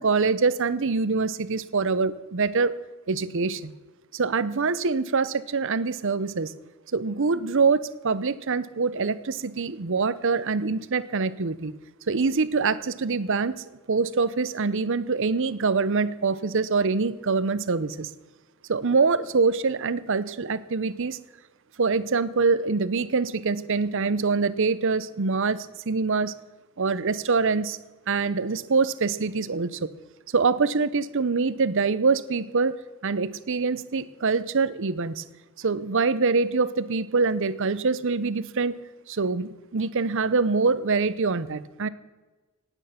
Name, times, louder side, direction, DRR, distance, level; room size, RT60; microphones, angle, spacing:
voice 1, 0.0-2.8 3.1-3.7 4.1-6.5 6.9-7.8 8.0-11.7 12.1-13.6 13.9-18.1 18.7-21.2 21.8-26.3 26.8-27.8 28.1-29.9 30.3-32.8 33.0-35.2 35.6-38.7 39.1-41.9, right 4 dB, 60° right, 16 dB, 0.7 m, -24 dB
18.5 x 9.0 x 5.8 m, 1.2 s
head